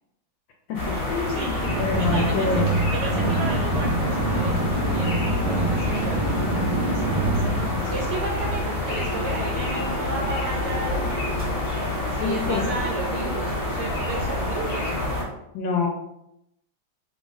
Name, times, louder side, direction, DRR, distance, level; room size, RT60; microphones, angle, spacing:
voice 1, 0.7-2.7 12.2-12.7 15.5-15.9, left 5 dB, 80° left, 0 dB, 1.3 m, -26 dB
sound 1, 0.7-15.2, left 2 dB, 45° left, 1.3 m, -27 dB
voice 2, 1.4-2.6 2.9-11.3 12.1-14.9, right 3 dB, 75° right, 0 dB, 1.3 m, -34 dB
sound 2, 1.6-8.5, right 2 dB, 25° right, 0.4 m, -26 dB
3.6 x 2.4 x 3.9 m, 0.80 s
omnidirectional pair, 2.1 m